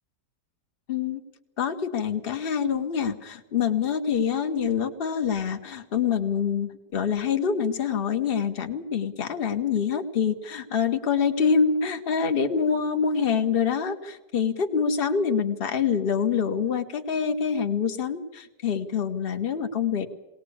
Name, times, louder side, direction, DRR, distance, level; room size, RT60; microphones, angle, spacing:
voice 1, 0.9-1.2 1.6-20.1, left 6 dB, 40° left, 6 dB, 1.3 m, -26 dB
20.0 x 19.0 x 8.6 m, 1.0 s
omnidirectional pair, 1.7 m